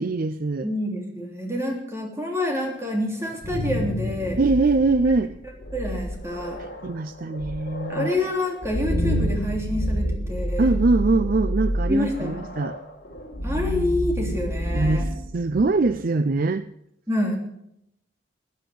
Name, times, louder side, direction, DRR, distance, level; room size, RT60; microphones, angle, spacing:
voice 1, 0.0-0.7 4.4-5.3 6.8-8.1 10.6-12.8 14.7-16.6, right 3 dB, 50° right, 12 dB, 0.5 m, -22 dB
voice 2, 0.6-4.4 5.7-6.6 7.9-10.8 11.9-12.4 13.4-15.1 17.1-17.4, left 1 dB, 15° right, 0 dB, 3.2 m, -27 dB
sound 1, 3.2-16.0, equal, 50° left, 4.4 m, -29 dB
15.0 x 9.4 x 6.9 m, 0.76 s
head